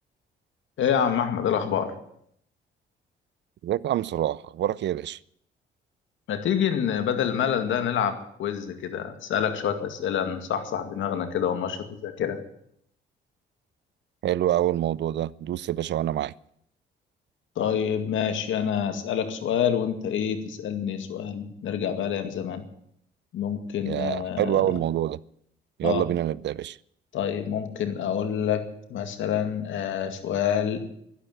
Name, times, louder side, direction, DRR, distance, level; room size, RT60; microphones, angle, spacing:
voice 1, 0.8-1.9 6.3-12.4 17.6-22.6 23.3-24.7 25.8-26.0 27.1-28.6 28.9-30.9, left 8 dB, 75° left, 2.2 m, -27 dB
voice 2, 3.6-5.2 14.2-16.3 23.9-25.2 25.8-26.8, right 12 dB, 65° right, 0.5 m, -26 dB
12.5 x 11.5 x 9.2 m
cardioid pair, 90°, 20 cm